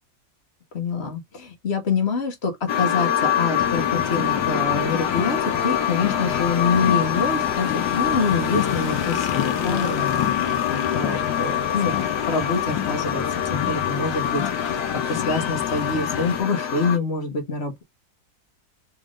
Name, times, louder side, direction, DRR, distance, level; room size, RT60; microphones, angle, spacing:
voice 1, 0.7-13.2 13.5-17.8, left 4 dB, 40° left, 1.2 m, -26 dB
sound 1, 2.7-17.0, left 9 dB, 65° left, 1.4 m, -25 dB
sound 2, 3.6-16.4, left 10 dB, 85° left, 1.4 m, -30 dB
4.2 x 3.4 x 2.4 m
omnidirectional pair, 2.0 m